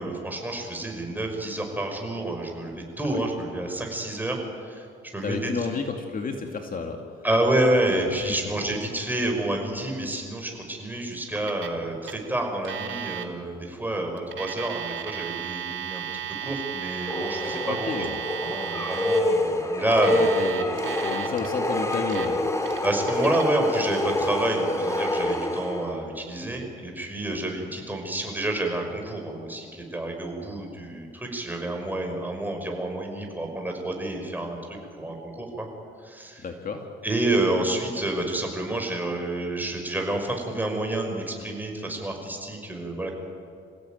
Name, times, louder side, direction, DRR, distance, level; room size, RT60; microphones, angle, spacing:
voice 1, 0.0-4.4 4.6-4.9 5.1-5.5 7.2-17.9 18.4-20.2 22.8-35.7 36.0-36.5 37.0-43.1, right 1 dB, 10° right, 2 dB, 5.8 m, -29 dB
voice 2, 5.2-7.0 8.1-8.2 17.6-18.2 20.1-22.5 27.3-27.4 36.4-36.9, left 4 dB, 45° left, 3 dB, 2.4 m, -31 dB
Alarm, 11.5-11.8 12.0-12.1 12.6-13.2 14.2-19.2 19.9-21.5 21.9-22.3 22.6-23.4, right 10 dB, 75° right, 2.1 m, -34 dB
sound 1, 17.0-26.1, left 1 dB, 15° left, 2.9 m, -27 dB
28.0 x 16.5 x 9.3 m, 2.3 s
cardioid pair, 90°, 20 cm